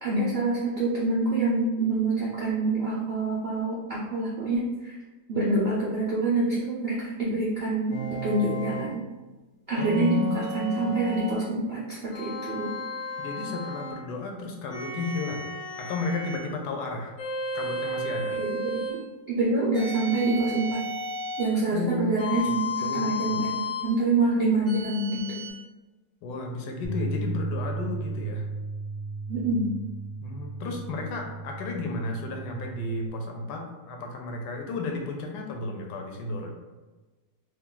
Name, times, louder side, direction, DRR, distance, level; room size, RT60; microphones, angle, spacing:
voice 1, 0.0-5.0 5.3-9.0 9.7-12.7 18.3-19.0 19.3-20.8 21.4-25.4 29.3-29.7, right 2 dB, 85° right, -7 dB, 0.5 m, -26 dB
sound 1, 7.9-8.9 9.7-11.4 12.1-14.0 14.7-16.5 17.2-19.0 19.7-21.5 22.2-23.9 24.7-25.5, left 1 dB, 50° left, 1.0 m, -33 dB
voice 2, 9.8-10.3 13.2-15.4 15.8-17.1 17.5-18.4 21.7-22.2 22.4-22.5 22.8-23.4 26.2-28.4 30.2-36.5, left 3 dB, 70° left, 2 dB, 1.1 m, -33 dB
Bass guitar, 26.8-33.1, right 3 dB, 5° left, 0.4 m, -35 dB
2.9 x 2.3 x 3.7 m, 1.2 s
omnidirectional pair, 1.9 m